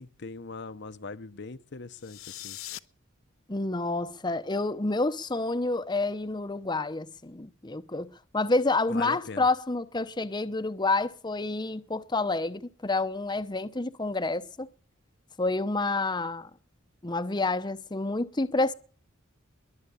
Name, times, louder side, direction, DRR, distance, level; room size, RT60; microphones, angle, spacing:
voice 1, 0.0-2.6 8.9-9.5, left 4 dB, 55° left, 0.9 m, -40 dB
sound 1, 1.9-2.8, left 14 dB, 85° left, 0.9 m, -41 dB
voice 2, 3.5-8.1 8.3-14.7 15.4-16.5 17.0-18.7, left 2 dB, 20° left, 0.8 m, -28 dB
22.5 x 7.7 x 8.5 m
head